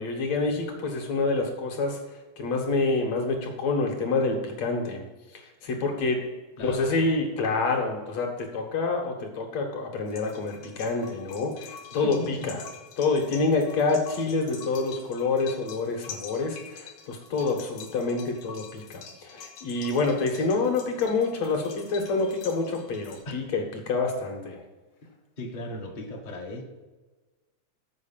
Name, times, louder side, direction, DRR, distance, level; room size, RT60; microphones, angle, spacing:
voice 1, 0.0-2.0 2.4-5.0 5.4-6.3 6.6-12.6 13.0-24.6, left 3 dB, 65° left, 2 dB, 2.6 m, -27 dB
voice 2, 6.6-7.1 11.9-12.6 23.2-23.3 25.4-26.6, left 1 dB, 40° left, 0 dB, 0.6 m, -37 dB
sound 1, 10.1-23.2, left 6 dB, 90° left, 2.7 m, -46 dB
7.7 x 4.9 x 7.3 m, 1.2 s
omnidirectional pair, 3.4 m